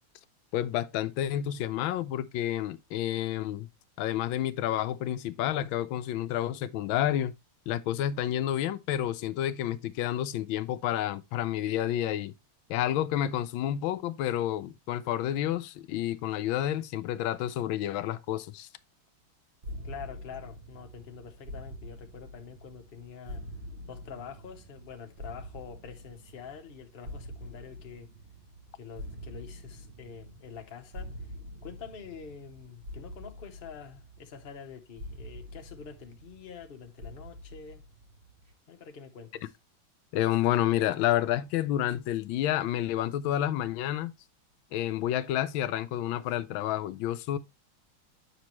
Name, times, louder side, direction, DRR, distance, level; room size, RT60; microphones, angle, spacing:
voice 1, 0.5-3.7 4.0-7.3 7.7-12.3 12.7-18.7 40.1-44.1 44.7-47.4, left 12 dB, 75° left, 1.3 m, -29 dB
sound 1, 19.6-38.5, equal, 40° right, 1.2 m, -45 dB
voice 2, 19.8-23.4 23.9-28.1 28.8-31.3 31.6-37.8 38.7-39.5, left 7 dB, 40° left, 0.8 m, -46 dB
7.9 x 6.0 x 3.0 m
omnidirectional pair, 2.3 m